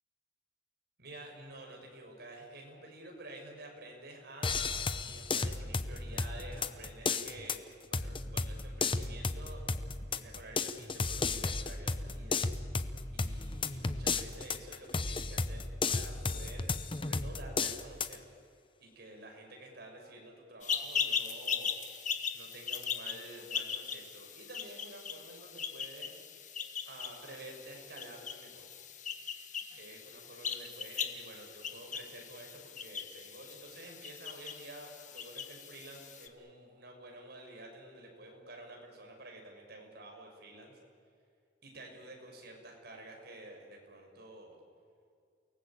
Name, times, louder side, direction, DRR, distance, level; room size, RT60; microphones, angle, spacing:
voice 1, 1.0-9.7 10.1-12.4 13.1-18.2 18.8-21.8 22.3-26.2 26.8-28.7 29.7-40.7 41.6-44.6, right 1 dB, 60° right, 1 dB, 6.1 m, -50 dB
sound 1, 4.4-18.2, left 3 dB, 30° left, 0.9 m, -34 dB
sound 2, 20.6-36.3, left 7 dB, 45° left, 1.6 m, -39 dB
29.0 x 18.5 x 8.7 m, 2.3 s
head